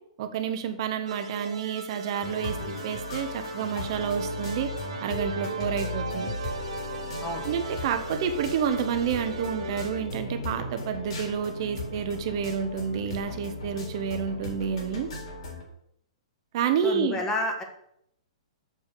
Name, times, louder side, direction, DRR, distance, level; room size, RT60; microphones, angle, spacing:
voice 1, 0.2-4.7 5.0-6.3 7.4-15.1 16.5-17.2, right 7 dB, 45° right, 7 dB, 1.0 m, -29 dB
sound 1, 1.1-10.0, right 4 dB, 75° right, 1.4 m, -38 dB
sound 2, 2.2-15.6, left 1 dB, 65° left, 3.6 m, -36 dB
voice 2, 16.8-17.6, left 1 dB, 15° left, 3 dB, 1.5 m, -30 dB
7.0 x 5.1 x 6.7 m, 0.74 s
hypercardioid pair, 150°, 4 cm